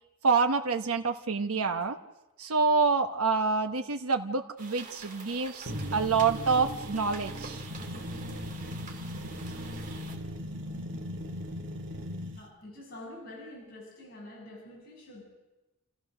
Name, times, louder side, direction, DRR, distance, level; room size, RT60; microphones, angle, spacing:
voice 1, 0.2-2.0 2.4-7.7, right 4 dB, 85° right, 7 dB, 0.9 m, -27 dB
sound 1, 4.6-10.2, right 4 dB, 35° right, 2.3 m, -47 dB
sound 2, 5.7-12.4, equal, 60° right, 2.1 m, -38 dB
voice 2, 12.3-15.2, left 1 dB, 45° left, -4 dB, 7.7 m, -46 dB
29.5 x 14.0 x 6.5 m, 1.1 s
head